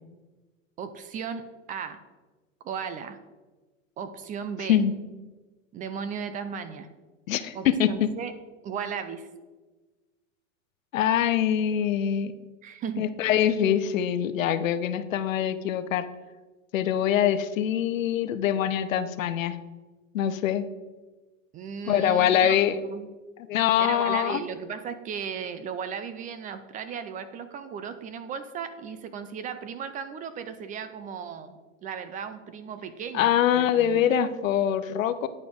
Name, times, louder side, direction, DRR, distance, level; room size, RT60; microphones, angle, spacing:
voice 1, 0.8-2.0 2.6-3.2 4.0-4.8 5.7-6.9 7.5-8.3 8.6-9.3 12.6-13.4 21.5-23.1 23.8-34.1, right 7 dB, 20° right, 11 dB, 0.4 m, -36 dB
voice 2, 7.3-8.1 10.9-12.3 13.0-16.1 16.7-19.6 20.1-20.6 21.9-22.7 23.5-24.4 33.1-35.3, left 10 dB, 90° left, 12 dB, 0.8 m, -24 dB
9.4 x 5.0 x 5.2 m, 1.2 s
supercardioid pair, 130°, 38 cm